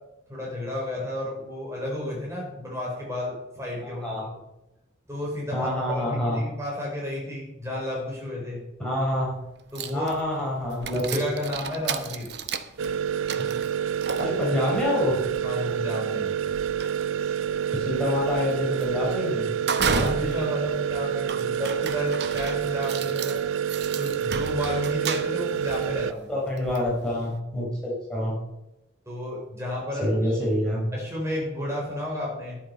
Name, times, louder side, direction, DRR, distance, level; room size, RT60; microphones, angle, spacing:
voice 1, 0.3-4.2 5.1-8.6 9.7-10.1 10.9-12.3 15.4-16.4 19.8-23.4 23.9-26.3 29.1-30.4 30.9-32.6, left 1 dB, 15° right, -4 dB, 4.2 m, -32 dB
voice 2, 5.5-6.4 8.8-9.3 9.9-11.3 14.2-15.2 17.2-17.3 17.7-19.5 26.3-28.4 30.0-30.8, left 1 dB, 5° left, -6 dB, 4.2 m, -27 dB
sound 1, 9.3-9.4 9.7-27.4, right 5 dB, 55° right, 0.8 m, -34 dB
sound 2, 12.8-26.1, right 8 dB, 85° right, 0.4 m, -28 dB
11.5 x 10.0 x 5.3 m, 0.96 s
head